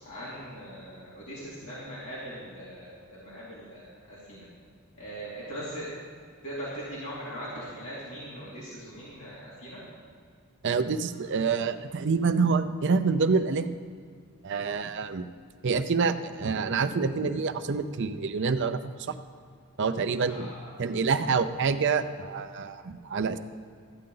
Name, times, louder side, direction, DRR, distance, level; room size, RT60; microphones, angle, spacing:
voice 1, 0.0-4.5 5.0-5.9 6.4-9.8 20.2-20.9, equal, 70° left, -9 dB, 2.6 m, -40 dB
voice 2, 10.6-13.8 14.4-15.3 15.6-18.8 19.1-19.2 19.8-20.5 20.8-23.4, right 5 dB, 55° right, 10 dB, 0.5 m, -27 dB
13.5 x 8.7 x 3.9 m, 2.2 s
head